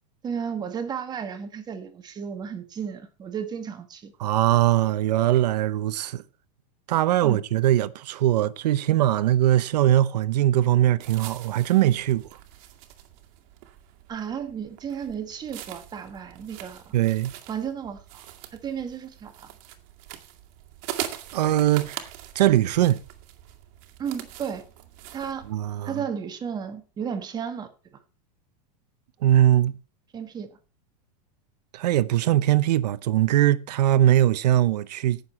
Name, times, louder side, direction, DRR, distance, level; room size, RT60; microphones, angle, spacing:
voice 1, 0.2-4.1 7.2-7.4 14.1-17.0 17.5-19.5 24.0-24.6 25.1-25.5 25.8-27.7 30.1-30.6, right 7 dB, 20° right, 1.5 m, -33 dB
voice 2, 4.2-6.2 6.9-12.2 16.9-17.3 21.3-22.1 22.3-23.0 25.5-26.0 29.2-29.8 31.7-35.2, right 13 dB, 85° right, 0.9 m, -21 dB
sound 1, 11.0-25.7, right 12 dB, 45° right, 2.0 m, -42 dB
17.5 x 6.9 x 4.3 m
supercardioid pair, 150°, 20 cm